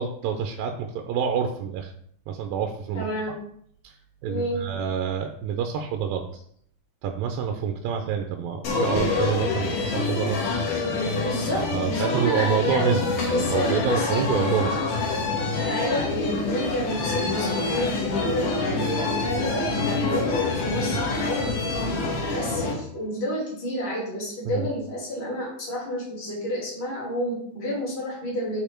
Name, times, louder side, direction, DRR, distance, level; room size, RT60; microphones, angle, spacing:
voice 1, 0.0-1.9 2.3-3.1 3.8-4.0 4.2-6.3 7.0-10.4 11.5-14.8 20.9-21.0 24.5-24.7, right 7 dB, 80° right, 4 dB, 2.3 m, -27 dB
voice 2, 2.9-3.4 4.3-4.6 11.1-14.2 15.6-21.7 22.3-28.6, equal, 20° left, -4 dB, 2.5 m, -30 dB
sound 1, 8.6-22.7, left 3 dB, 65° left, 2.9 m, -26 dB
6.9 x 5.2 x 4.4 m, 0.65 s
omnidirectional pair, 4.1 m